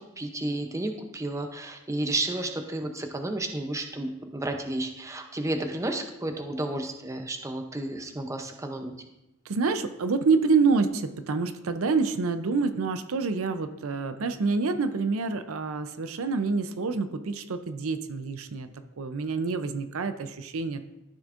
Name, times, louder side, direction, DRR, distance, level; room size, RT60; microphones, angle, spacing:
voice 1, 0.2-9.0, right 2 dB, 15° right, 5 dB, 0.5 m, -32 dB
voice 2, 9.5-18.7 19.0-20.8, right 4 dB, 65° right, 10 dB, 0.5 m, -27 dB
13.5 x 6.3 x 2.5 m, 0.94 s
head